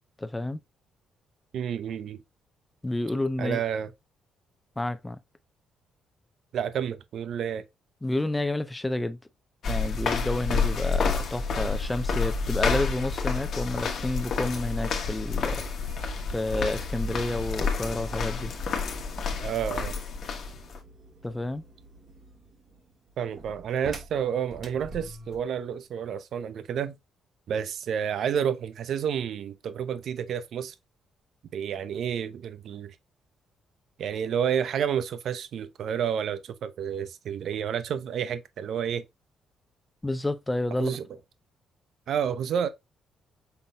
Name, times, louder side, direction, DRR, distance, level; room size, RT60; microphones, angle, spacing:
voice 1, 0.2-0.6 2.8-3.6 4.8-5.2 8.0-9.2 9.7-15.6 16.3-18.5 21.2-21.6 40.0-41.0, left 1 dB, 15° left, 0.7 m, -30 dB
voice 2, 1.5-2.2 3.4-3.9 6.5-7.6 19.4-20.0 23.2-26.9 27.5-30.7 31.5-32.9 34.0-39.0 40.8-41.0 42.1-42.7, right 8 dB, 70° right, 0.7 m, -30 dB
sound 1, 9.6-20.8, left 5 dB, 60° left, 1.2 m, -29 dB
sound 2, 15.8-25.6, right 2 dB, 50° right, 1.5 m, -49 dB
5.7 x 4.0 x 2.3 m
cardioid pair, 90°, 0 cm